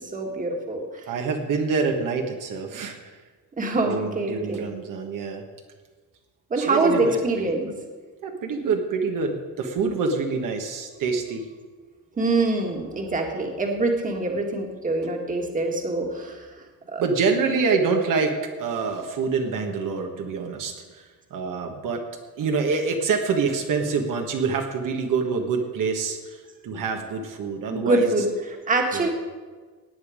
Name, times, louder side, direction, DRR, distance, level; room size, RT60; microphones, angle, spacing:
voice 1, 0.1-1.0 3.6-4.6 6.5-7.7 12.2-16.5 16.9-17.0 27.7-28.2 28.7-29.1, right 2 dB, 20° right, 2 dB, 1.8 m, -24 dB
voice 2, 1.1-3.2 3.8-5.4 6.6-7.2 8.2-11.5 17.0-22.0 22.4-28.1 28.9-29.1, right 4 dB, 60° right, 3 dB, 1.5 m, -26 dB
17.5 x 9.2 x 5.1 m, 1.4 s
cardioid pair, 160°, 36 cm